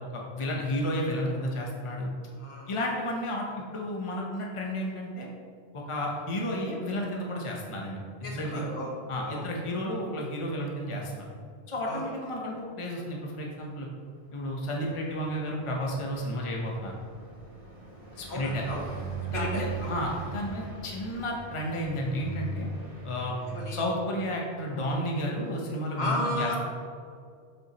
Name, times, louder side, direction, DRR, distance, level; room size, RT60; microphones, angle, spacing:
voice 1, 0.1-2.1 2.7-5.3 5.7-8.6 9.1-11.2 11.7-13.9 14.3-17.0 18.2-18.6 19.3-22.7 23.0-23.4 23.7-26.6, equal, 30° left, -1 dB, 0.9 m, -32 dB
voice 2, 2.4-2.7 8.2-9.0 9.2-9.5 11.9-12.1 18.3-18.8 19.3-19.9 23.4-23.8 26.0-26.6, left 1 dB, 70° left, -2 dB, 1.6 m, -33 dB
Car passing by, 14.1-25.1, right 3 dB, 55° right, 2.1 m, -40 dB
7.3 x 6.3 x 2.9 m, 2.2 s
omnidirectional pair, 1.1 m